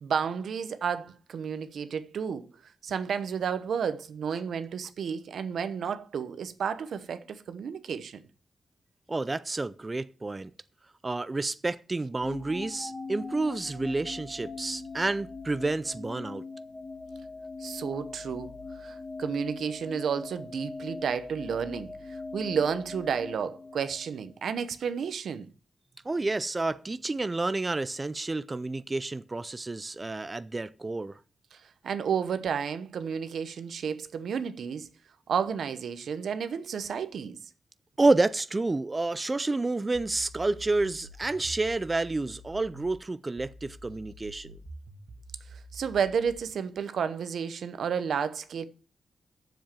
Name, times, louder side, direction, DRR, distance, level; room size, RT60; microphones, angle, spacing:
voice 1, 0.0-2.5 2.8-8.2 17.6-25.5 31.5-31.6 31.8-34.9 35.3-37.4 45.5-48.7, right 7 dB, 85° right, 0.9 m, -31 dB
voice 2, 9.1-10.5 11.0-16.4 26.0-31.2 38.0-44.6, right 2 dB, 25° right, 0.5 m, -29 dB
sound 1, 12.2-24.3, left 3 dB, 30° left, 2.3 m, -41 dB
sound 2, 39.9-43.0 43.4-46.4, right 2 dB, 65° right, 1.7 m, -47 dB
7.4 x 7.3 x 7.5 m
cardioid pair, 80°, 0 cm